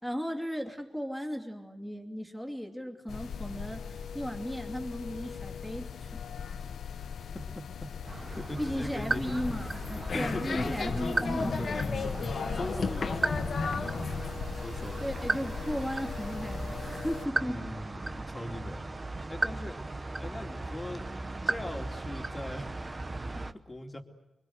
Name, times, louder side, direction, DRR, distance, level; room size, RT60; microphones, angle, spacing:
voice 1, 0.0-6.1 8.6-9.8 10.1-11.9 15.0-17.6, equal, ahead, 2 dB, 2.8 m, -36 dB
sound 1, 3.1-17.3, left 7 dB, 85° left, 0.9 m, -40 dB
sound 2, 8.0-23.5, right 2 dB, 20° right, 0.9 m, -36 dB
voice 2, 8.2-9.2 9.9-10.9 12.5-14.1 14.6-15.1 17.4-18.8 19.1-19.8 20.2-21.1 21.4-22.8 23.7-24.1, left 1 dB, 15° left, 3 dB, 2.6 m, -40 dB
sound 3, 8.9-14.4, left 4 dB, 50° left, 1.8 m, -34 dB
26.0 x 24.0 x 7.9 m, 1.0 s
wide cardioid pair, 165°, 0 cm